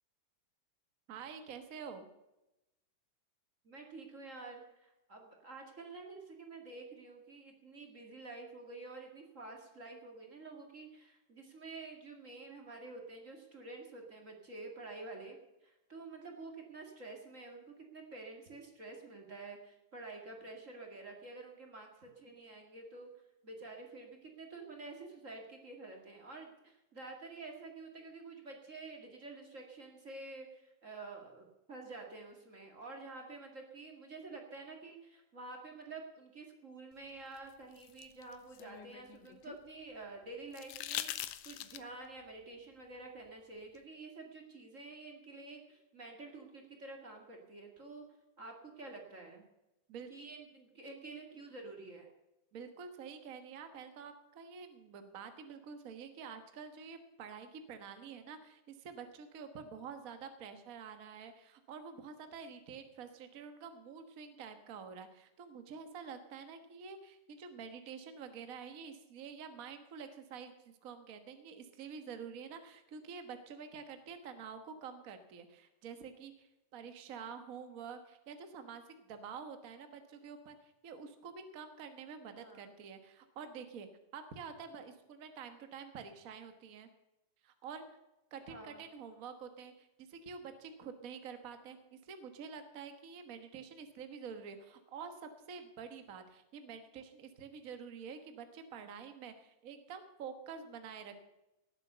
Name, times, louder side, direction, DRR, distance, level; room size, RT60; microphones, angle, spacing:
voice 1, 1.1-2.1 49.9-50.1 52.5-83.9 84.1-86.9 87.4-87.8 88.3-101.2, right 6 dB, 80° right, 8 dB, 0.7 m, -48 dB
voice 2, 3.6-15.4 15.6-23.1 23.4-48.0 48.4-49.4 50.1-52.1 58.0-58.3 82.3-82.7 88.5-88.8, right 3 dB, 30° right, 1 dB, 2.0 m, -49 dB
sound 1, 37.4-39.6 40.5-42.1 43.8-43.9, left 13 dB, 85° left, 2.3 m, -43 dB
18.5 x 7.6 x 6.8 m, 0.95 s
omnidirectional pair, 3.6 m